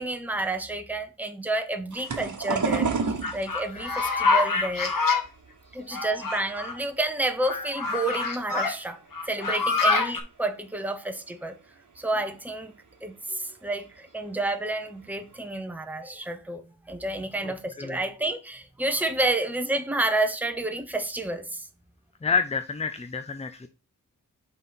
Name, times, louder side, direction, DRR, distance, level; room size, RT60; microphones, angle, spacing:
voice 1, 0.0-2.9 3.3-4.9 5.7-9.0 9.3-11.5 12.0-21.7, right 2 dB, 5° right, 0.9 m, -30 dB
sound 1, 1.9-7.0 7.4-8.3 8.8-9.1 9.3-9.4 10.7-10.8 11.3-11.4 11.9-12.0 12.2-12.6 13.8-14.0 14.5-14.6 15.0-15.5, right 5 dB, 60° right, 1.2 m, -31 dB
sound 2, 3.2-5.2 5.9-6.8 7.4-8.7 9.1-10.2, left 3 dB, 70° left, 1.5 m, -25 dB
voice 2, 22.2-23.7, left 5 dB, 20° left, 0.4 m, -28 dB
5.4 x 4.1 x 5.8 m
wide cardioid pair, 115°, 34 cm